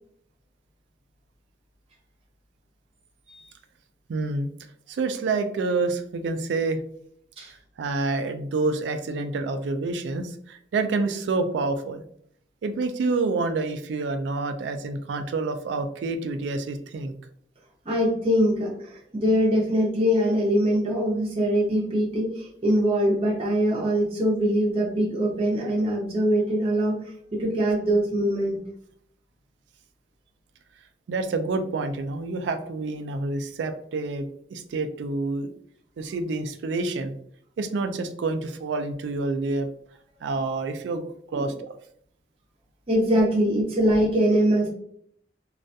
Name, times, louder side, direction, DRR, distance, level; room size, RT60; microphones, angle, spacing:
voice 1, 4.1-4.5 4.9-6.8 7.4-7.5 7.8-12.0 12.6-17.1 31.1-35.5 36.0-37.1 37.6-39.7 40.2-41.5, right 3 dB, 85° right, 8 dB, 0.3 m, -28 dB
voice 2, 17.8-28.6 41.3-41.5 42.9-44.7, equal, 35° right, -4 dB, 0.6 m, -23 dB
2.3 x 2.2 x 2.6 m, 0.66 s
head